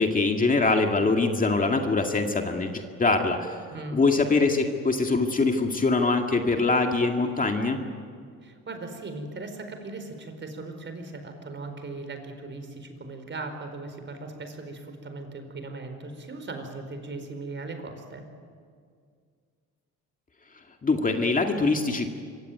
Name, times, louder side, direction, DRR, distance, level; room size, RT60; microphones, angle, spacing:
voice 1, 0.0-3.6 3.9-7.8 20.8-22.1, left 3 dB, 25° left, 3 dB, 2.1 m, -23 dB
voice 2, 3.7-4.0 8.4-18.2, right 3 dB, 35° right, 7 dB, 4.7 m, -38 dB
25.5 x 24.5 x 9.3 m, 2.1 s
cardioid pair, 120°, 33 cm